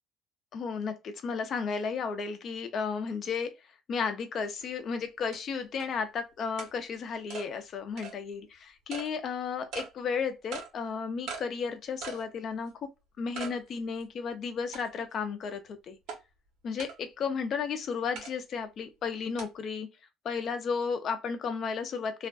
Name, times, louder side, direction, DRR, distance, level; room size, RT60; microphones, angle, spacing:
voice 1, 0.5-3.5 3.9-12.9 13.2-16.0 16.6-19.9 20.2-22.3, left 5 dB, 50° left, 0.6 m, -33 dB
sound 1, 4.6-4.7 5.3-5.4 5.8-5.9 6.6-6.7 7.3-7.5 8.0-8.1 8.9-9.1 9.7-9.9 10.5-10.7 11.3-11.4 12.0-12.2 12.7-12.8 13.3-13.6 14.0-14.1 14.7-15.1 16.1-16.2 16.8-17.0 18.1-18.3 19.4-19.5, right 5 dB, 75° right, 1.0 m, -40 dB
2.4 x 2.2 x 2.3 m
cardioid pair, 120°, 0 cm